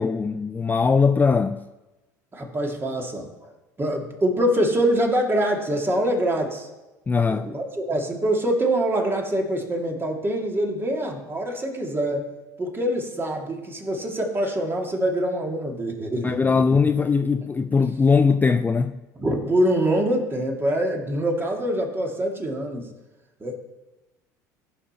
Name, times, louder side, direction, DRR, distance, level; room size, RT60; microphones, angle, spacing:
voice 1, 0.0-1.6 7.1-7.5 16.2-19.0, left 5 dB, 20° left, 0.4 m, -20 dB
voice 2, 2.3-3.5 3.8-6.7 7.3-12.2 12.6-16.4 19.2-22.9 23.4-23.6, right 1 dB, 25° right, 2.1 m, -24 dB
14.5 x 5.7 x 4.3 m
hypercardioid pair, 70°, 9 cm